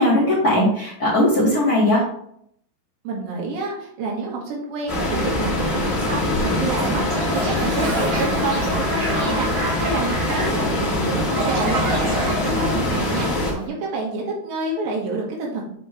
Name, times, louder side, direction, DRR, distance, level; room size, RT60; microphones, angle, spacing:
voice 1, 0.0-2.0, left 1 dB, 75° left, -6 dB, 0.8 m, -18 dB
voice 2, 3.1-15.6, right 3 dB, 75° right, -2 dB, 3.8 m, -28 dB
sound 1, 4.9-13.5, left 1 dB, 25° left, 1.4 m, -23 dB
Toilet flush, 6.6-13.6, right 1 dB, 45° right, 2.4 m, -29 dB
8.3 x 5.6 x 3.3 m, 0.68 s
omnidirectional pair, 5.1 m